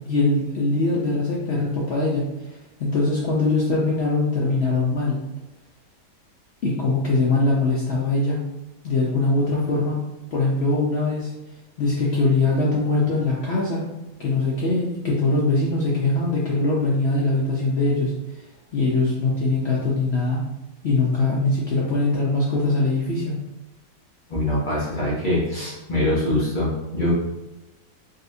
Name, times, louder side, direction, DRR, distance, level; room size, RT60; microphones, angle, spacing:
voice 1, 0.0-2.2 2.5-5.2 6.6-8.4 8.8-10.0 10.3-11.3 11.8-13.8 14.2-18.1 18.7-20.4 20.8-23.3, left 2 dB, 90° left, -5 dB, 0.5 m, -22 dB
voice 2, 24.3-27.1, left 1 dB, 45° left, -7 dB, 0.6 m, -23 dB
4.0 x 2.4 x 2.6 m, 1.0 s
omnidirectional pair, 1.9 m